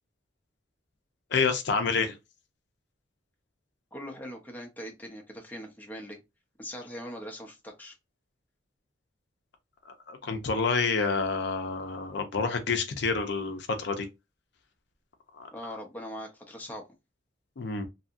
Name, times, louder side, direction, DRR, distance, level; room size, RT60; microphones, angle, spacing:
voice 1, 1.3-2.1 9.9-14.1 15.4-15.5 17.6-17.9, left 4 dB, 60° left, 0.5 m, -28 dB
voice 2, 3.9-6.2 6.6-7.9 15.5-16.8, equal, 10° left, 0.5 m, -41 dB
2.7 x 2.6 x 2.4 m
head